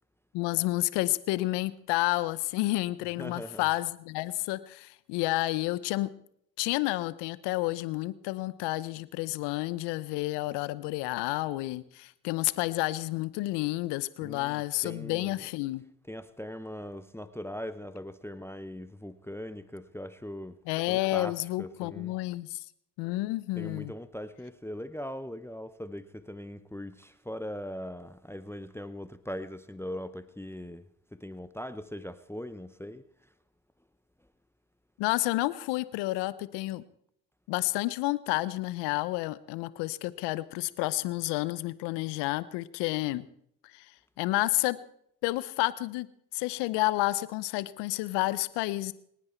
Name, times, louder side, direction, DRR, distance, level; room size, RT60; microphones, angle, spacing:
voice 1, 0.3-6.1 6.6-15.8 20.7-22.6 23.0-23.9 35.0-36.8 37.5-43.3 43.7-43.9 44.2-44.8 45.2-46.1 46.3-48.9, left 19 dB, 80° left, 0.9 m, -30 dB
voice 2, 3.2-3.6 14.2-15.4 16.1-20.6 20.9-22.1 23.6-33.3, left 1 dB, 5° left, 0.9 m, -40 dB
27.5 x 9.8 x 4.5 m
hypercardioid pair, 45°, 41 cm